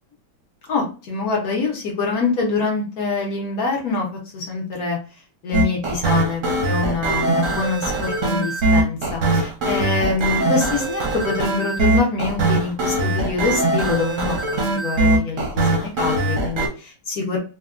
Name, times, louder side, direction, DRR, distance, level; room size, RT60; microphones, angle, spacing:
voice 1, 0.7-5.0 5.4-17.4, left 4 dB, 60° left, -1 dB, 1.1 m, -25 dB
sound 1, 5.5-16.7, right 2 dB, 60° right, 0.9 m, -21 dB
3.5 x 2.2 x 2.4 m, 0.34 s
omnidirectional pair, 2.0 m